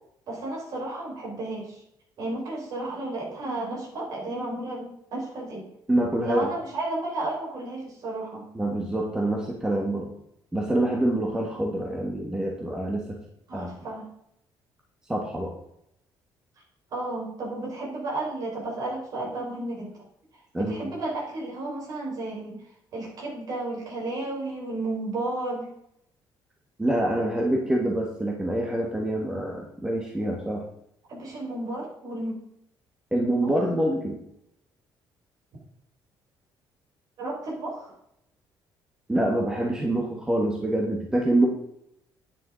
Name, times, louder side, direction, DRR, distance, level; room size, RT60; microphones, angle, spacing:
voice 1, 0.3-1.8 2.2-5.7 6.2-8.4 13.5-14.1 16.9-19.9 20.5-22.6 22.9-25.7 31.1-32.3 33.4-33.5 37.2-37.9, right 2 dB, 50° right, -2 dB, 4.8 m, -33 dB
voice 2, 5.9-6.5 8.5-10.1 10.5-13.2 13.5-13.7 15.1-15.5 20.5-20.9 26.8-30.6 33.1-34.2 39.1-41.5, right 1 dB, 10° right, 0 dB, 1.3 m, -26 dB
9.8 x 9.5 x 3.8 m, 0.78 s
cardioid pair, 170°, 8 cm